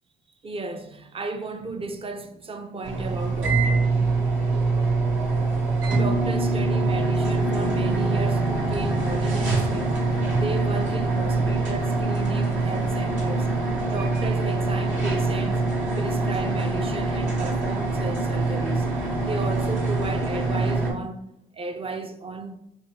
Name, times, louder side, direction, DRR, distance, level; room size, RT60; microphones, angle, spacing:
voice 1, 0.4-3.9 5.9-13.5 13.9-15.6 16.0-18.9 19.2-21.2 21.5-22.6, right 3 dB, 30° right, 0.6 m, -34 dB
sound 1, 2.8-20.9, right 3 dB, 75° right, 1.8 m, -24 dB
5.1 x 2.3 x 4.5 m
cardioid pair, 90°, 20 cm